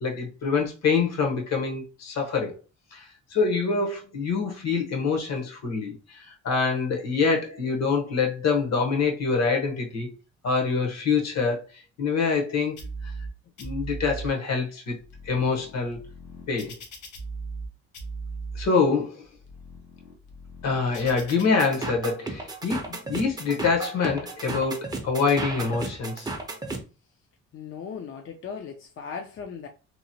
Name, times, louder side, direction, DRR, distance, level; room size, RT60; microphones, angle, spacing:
voice 1, 0.0-2.5 2.9-10.1 10.4-11.6 12.0-12.7 13.6-15.0 15.2-16.0 16.5-16.7 18.5-19.2 20.6-26.3, left 4 dB, 60° left, 1.0 m, -25 dB
sound 1, 12.8-13.3 13.6-14.3 14.9-17.7 17.9-18.7 19.2-21.4, right 3 dB, 85° left, 0.8 m, -38 dB
sound 2, 21.6-26.8, right 2 dB, 15° right, 0.5 m, -34 dB
voice 2, 27.5-29.7, left 6 dB, 45° left, 0.5 m, -37 dB
2.9 x 2.0 x 2.7 m
cardioid pair, 90°, 30 cm